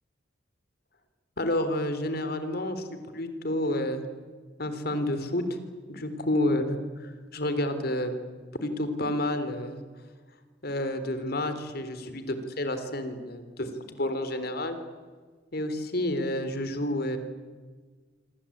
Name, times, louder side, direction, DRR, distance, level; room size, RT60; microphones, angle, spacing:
voice 1, 1.4-4.1 4.6-5.4 5.9-8.1 8.6-9.8 10.6-14.8 15.5-17.2, left 1 dB, 55° left, 9 dB, 3.6 m, -30 dB
26.5 x 25.0 x 8.7 m, 1.5 s
head